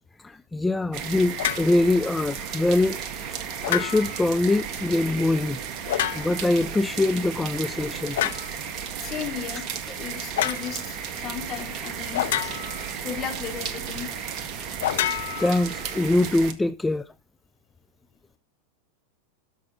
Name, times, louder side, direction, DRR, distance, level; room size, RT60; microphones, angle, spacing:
voice 1, 0.2-3.0 3.7-5.6 6.1-8.3 9.9-10.0 12.3-12.5 15.4-17.1, left 2 dB, 10° left, 0.4 m, -23 dB
sound 1, 0.9-16.5, right 7 dB, 45° right, 1.7 m, -34 dB
sound 2, 1.4-1.7 3.6-4.2 5.9-6.5 8.2-8.5 10.4-10.7 12.1-12.9 14.8-15.9, left 12 dB, 65° left, 0.9 m, -28 dB
voice 2, 9.0-9.7 10.0-12.2 13.0-14.1, left 9 dB, 35° left, 3.7 m, -35 dB
12.5 x 6.1 x 5.6 m
hypercardioid pair, 90°, 0 cm